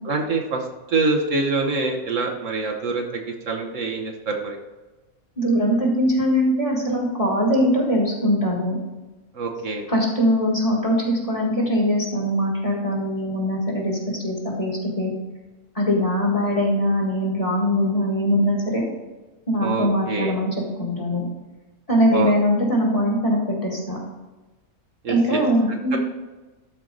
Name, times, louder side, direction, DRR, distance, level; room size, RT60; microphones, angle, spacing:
voice 1, 0.1-0.6 0.9-4.6 9.3-9.9 19.6-20.4 22.1-22.3 25.0-25.4, right 3 dB, 60° right, 1 dB, 1.4 m, -25 dB
voice 2, 5.4-8.8 9.9-15.1 15.8-18.8 19.5-21.2 21.9-24.0 25.1-26.0, equal, 25° left, -2 dB, 1.9 m, -21 dB
12.5 x 4.6 x 3.9 m, 1.2 s
omnidirectional pair, 1.5 m